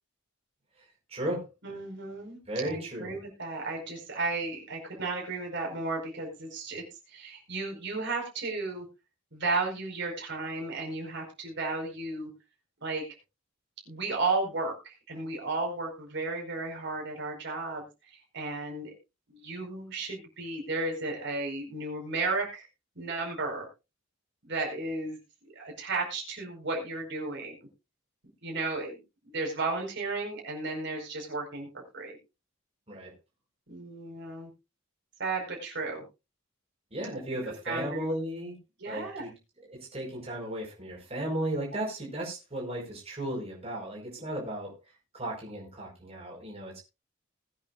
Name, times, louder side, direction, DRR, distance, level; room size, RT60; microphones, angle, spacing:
voice 1, 1.1-1.5 2.5-3.1 32.9-33.1 36.9-38.6 38.8-44.8 45.1-46.8, right 1 dB, 30° right, -2 dB, 4.9 m, -35 dB
voice 2, 1.6-6.8 7.1-8.8 9.3-12.3 12.8-13.0 13.9-18.9 19.3-22.7 22.9-23.7 24.4-25.2 25.5-27.5 28.4-29.0 29.2-32.2 33.7-34.5 35.2-36.0 37.4-38.1 38.8-39.2 41.7-41.8, right 3 dB, 60° right, 0 dB, 5.0 m, -34 dB
20.5 x 9.0 x 2.5 m, 0.27 s
head